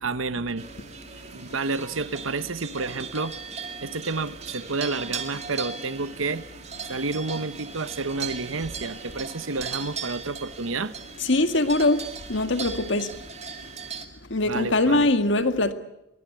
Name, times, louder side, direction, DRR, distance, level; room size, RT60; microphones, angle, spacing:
voice 1, 0.0-0.7 1.3-3.4 3.8-6.5 6.9-10.9 14.5-15.1, right 3 dB, 85° right, 13 dB, 1.1 m, -30 dB
sound 1, 0.6-14.0, right 5 dB, 35° right, 2.3 m, -38 dB
voice 2, 11.2-12.0 12.3-13.1 14.3-15.7, left 2 dB, 65° left, 9 dB, 1.9 m, -22 dB
23.0 x 22.5 x 9.3 m, 0.87 s
head